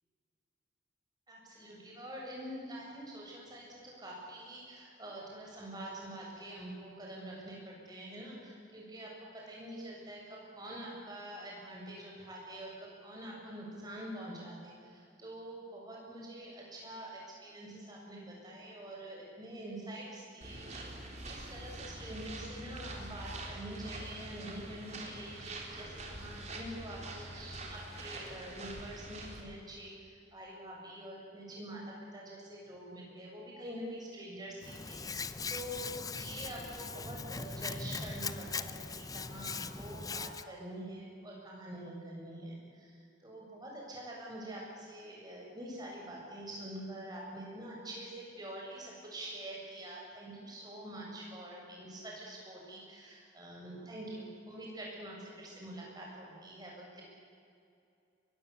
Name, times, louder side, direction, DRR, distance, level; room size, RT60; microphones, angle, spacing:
voice 1, 1.3-57.0, right 1 dB, 20° right, -3 dB, 7.7 m, -46 dB
sound 1, 20.4-29.4, right 2 dB, 35° right, 4.0 m, -45 dB
Hands, 34.6-40.4, left 4 dB, 20° left, 0.6 m, -40 dB
22.5 x 22.5 x 8.5 m, 2.5 s
head